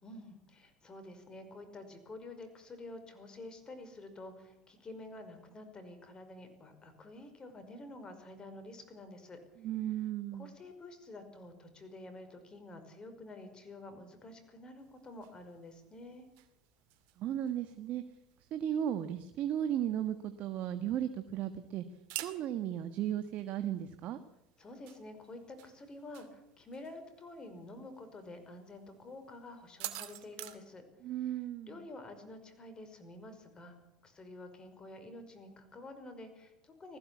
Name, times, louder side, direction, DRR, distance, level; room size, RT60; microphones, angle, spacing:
voice 1, 0.0-9.4 10.3-16.3 24.6-30.8 31.1-33.8 34.0-37.0, left 2 dB, 25° left, 9 dB, 5.4 m, -49 dB
voice 2, 9.6-10.5 17.2-18.0 18.5-21.8 22.2-24.2 31.0-31.8, right 10 dB, 55° right, 9 dB, 1.5 m, -35 dB
sound 1, 14.8-30.6, right 15 dB, 70° right, 2.2 m, -51 dB
20.0 x 15.0 x 8.5 m, 0.88 s
supercardioid pair, 95°, 3 cm